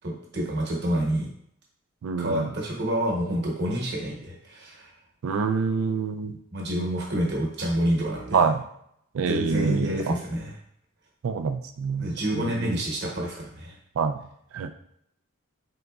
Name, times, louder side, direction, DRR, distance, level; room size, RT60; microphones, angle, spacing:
voice 1, 0.0-1.3 2.2-4.9 6.5-8.4 9.2-10.5 12.0-13.8, equal, 50° right, -2 dB, 1.1 m, -28 dB
voice 2, 2.0-2.5 5.2-6.4 8.3-8.6 9.1-10.2 11.2-12.8 14.0-14.2 14.5-14.7, right 5 dB, 70° right, 8 dB, 0.3 m, -26 dB
3.9 x 3.7 x 2.3 m, 0.71 s
head